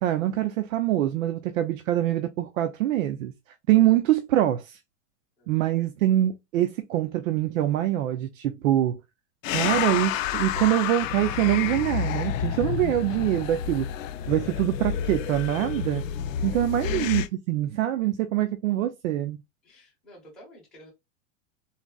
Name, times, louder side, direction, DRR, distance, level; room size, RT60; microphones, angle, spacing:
voice 1, 0.0-3.3 3.7-4.8 5.5-9.0 9.5-13.9 14.3-16.1 16.4-19.4, right 13 dB, 85° right, 0.6 m, -24 dB
sound 1, 9.4-17.3, left 9 dB, 80° left, 0.5 m, -29 dB
voice 2, 19.6-20.9, equal, ahead, 0.7 m, -51 dB
3.9 x 2.0 x 2.2 m
supercardioid pair, 180°, 39 cm